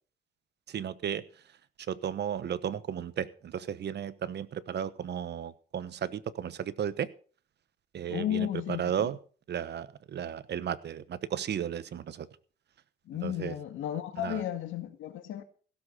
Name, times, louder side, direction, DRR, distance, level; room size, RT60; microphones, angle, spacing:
voice 1, 0.7-1.2 1.9-7.1 7.9-9.2 9.5-12.3 13.2-13.5 14.2-14.4, right 9 dB, 60° right, 1.1 m, -34 dB
voice 2, 8.1-9.1 13.1-15.4, left 11 dB, 80° left, 2.1 m, -34 dB
16.5 x 7.7 x 6.6 m
cardioid pair, 90°, 20 cm